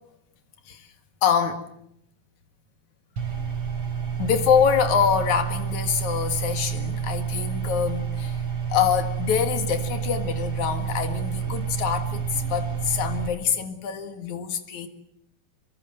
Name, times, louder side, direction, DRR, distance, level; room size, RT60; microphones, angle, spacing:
voice 1, 1.2-1.6 4.2-8.4 8.7-14.9, left 7 dB, 70° left, 3.3 m, -25 dB
sound 1, 3.2-13.3, right 7 dB, 50° right, 4.8 m, -29 dB
25.5 x 23.0 x 7.9 m
omnidirectional pair, 3.6 m